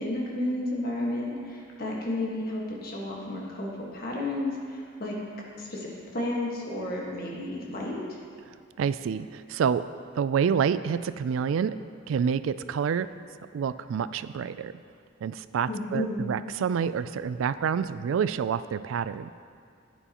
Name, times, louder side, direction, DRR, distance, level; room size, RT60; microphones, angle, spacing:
voice 1, 0.0-5.1 5.6-8.2 15.7-16.3, left 1 dB, 50° left, -3 dB, 1.6 m, -32 dB
voice 2, 8.8-9.8 10.2-11.8 12.1-13.1 13.5-14.7 15.2-19.3, right 7 dB, 80° right, 14 dB, 0.3 m, -28 dB
11.0 x 9.2 x 3.0 m, 2.3 s
head